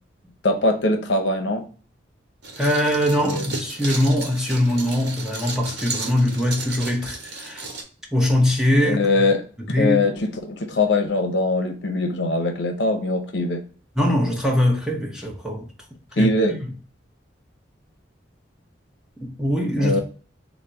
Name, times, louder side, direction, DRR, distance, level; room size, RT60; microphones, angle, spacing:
voice 1, 0.4-1.6 3.2-3.5 8.8-9.4 9.7-13.6 16.2-16.6 19.8-20.0, left 2 dB, 65° left, 0.7 m, -22 dB
sound 1, 2.4-7.8, right 3 dB, 60° right, 1.0 m, -34 dB
voice 2, 2.6-7.7 8.1-9.1 9.7-10.0 14.0-15.7 16.2-16.7 19.2-20.0, left 1 dB, 5° right, 0.7 m, -22 dB
4.0 x 2.1 x 4.4 m
head